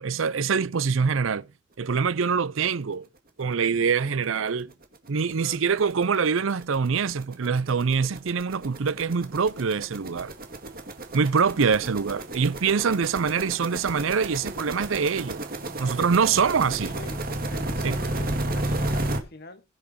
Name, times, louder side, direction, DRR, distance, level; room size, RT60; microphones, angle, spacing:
voice 1, 0.0-1.5 1.8-3.1 3.4-4.7 5.1-10.3 11.1-15.4 15.8-16.9 17.8-18.0, right 5 dB, 70° right, 0.6 m, -24 dB
sound 1, 3.8-3.9 4.2-4.3 4.6-19.2, right 1 dB, 45° right, 2.1 m, -33 dB
voice 2, 15.6-19.6, left 2 dB, 50° left, 1.4 m, -45 dB
21.0 x 7.4 x 2.8 m
head